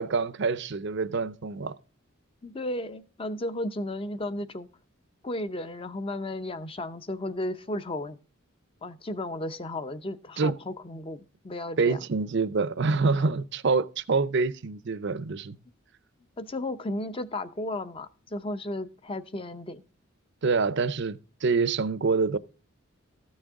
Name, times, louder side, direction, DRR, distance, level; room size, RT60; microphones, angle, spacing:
voice 1, 0.0-1.7 10.4-10.5 11.8-15.6 20.4-22.4, right 4 dB, 55° right, 0.5 m, -26 dB
voice 2, 2.4-4.7 5.2-8.2 8.8-12.0 16.4-19.8, left 1 dB, 25° left, 0.6 m, -34 dB
14.0 x 6.4 x 3.6 m
head